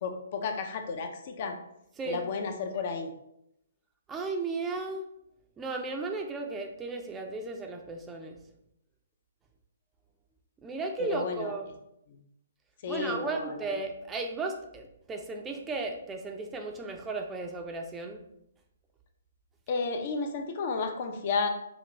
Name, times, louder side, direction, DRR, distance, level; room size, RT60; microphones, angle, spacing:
voice 1, 0.0-1.6 2.1-3.1 11.0-11.5 12.1-12.2 12.8-13.7 19.7-21.5, left 4 dB, 45° left, 6 dB, 0.6 m, -32 dB
voice 2, 4.1-5.1 5.6-8.4 10.6-11.7 12.9-18.2, right 3 dB, 15° right, 3 dB, 0.5 m, -35 dB
5.1 x 2.4 x 3.0 m, 0.79 s
hypercardioid pair, 140°, 0 cm